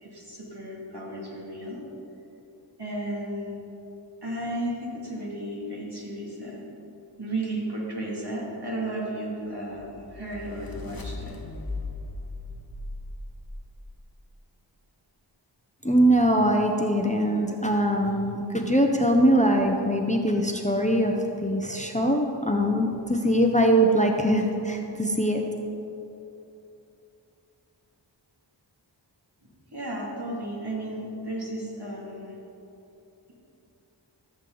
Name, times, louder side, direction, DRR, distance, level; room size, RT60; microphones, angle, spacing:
voice 1, 0.0-1.9 2.8-3.5 4.2-6.6 7.2-11.4 29.7-32.4, right 1 dB, 60° right, -4 dB, 2.5 m, -34 dB
sound 1, 9.7-14.0, left 2 dB, 50° left, 1.1 m, -38 dB
voice 2, 15.8-21.1 21.4-25.4, right 1 dB, 15° left, 2 dB, 0.7 m, -22 dB
14.5 x 7.4 x 3.9 m, 2.9 s
wide cardioid pair, 45°, 45 cm